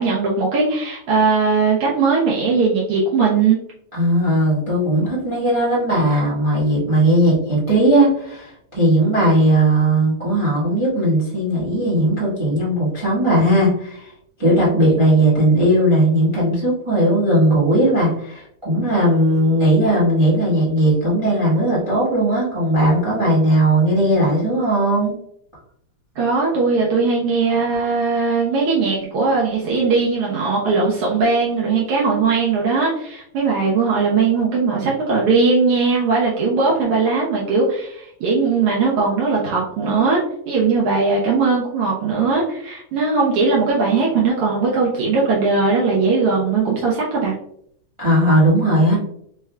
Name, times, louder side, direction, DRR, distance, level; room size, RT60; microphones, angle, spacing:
voice 1, 0.0-3.6 26.2-47.3, right 4 dB, 80° right, -4 dB, 1.3 m, -19 dB
voice 2, 3.9-14.1 14.4-25.1 48.0-49.0, right 1 dB, 35° right, -8 dB, 0.5 m, -17 dB
5.0 x 3.2 x 2.2 m, 0.70 s
omnidirectional pair, 3.5 m